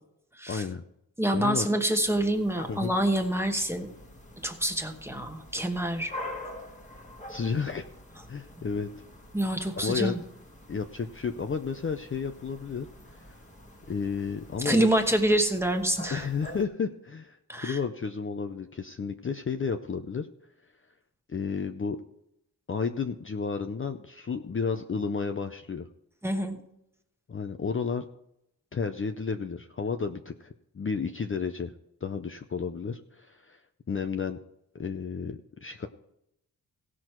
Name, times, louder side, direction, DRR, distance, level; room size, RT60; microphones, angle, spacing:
voice 1, 0.5-0.8 1.3-1.7 2.7-2.9 7.3-7.9 8.3-8.9 9.8-10.2 10.7-12.9 13.1-13.4 13.9-14.9 16.1-20.3 21.3-22.0 22.7-25.9 27.3-28.0 28.7-31.7 32.0-33.6 33.9-34.4 34.7-35.9, left 5 dB, 35° left, 6 dB, 0.5 m, -32 dB
voice 2, 1.2-3.9 4.4-6.2 9.3-10.2 14.6-16.3 17.5-17.8 26.2-26.6, right 1 dB, 5° right, 5 dB, 1.1 m, -26 dB
sound 1, 2.0-16.6, left 1 dB, 20° left, 1.3 m, -46 dB
17.0 x 6.2 x 4.5 m, 0.79 s
wide cardioid pair, 170°, 38 cm